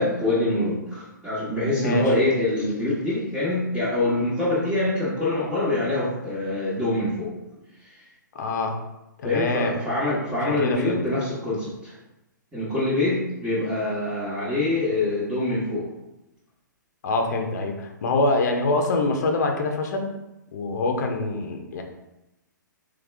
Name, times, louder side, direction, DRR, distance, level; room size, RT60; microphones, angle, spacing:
voice 1, 0.0-7.3 9.2-11.9 12.5-15.9, left 2 dB, 10° right, -10 dB, 1.4 m, -25 dB
voice 2, 1.7-2.1 8.3-8.8 9.2-9.8 10.4-11.0 17.0-20.1 20.5-21.8, left 2 dB, 55° left, 4 dB, 0.7 m, -25 dB
3.5 x 3.4 x 3.4 m, 0.92 s
figure-of-eight pair, 125°, 11 cm